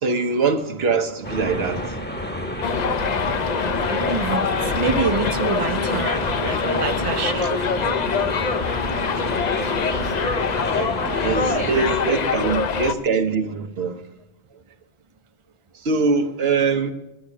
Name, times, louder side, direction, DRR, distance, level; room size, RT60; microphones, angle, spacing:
voice 1, 0.0-2.0 10.8-10.9 11.2-14.0 15.8-16.9, right 4 dB, 75° right, 1.3 m, -23 dB
sound 1, 1.2-12.0, equal, 10° left, 0.9 m, -30 dB
Subway metro underground, 2.6-12.9, left 6 dB, 50° left, 0.7 m, -24 dB
voice 2, 3.9-8.3 11.3-11.7 12.2-12.4, right 5 dB, 35° right, 0.7 m, -27 dB
10.0 x 10.0 x 8.3 m
omnidirectional pair, 1.1 m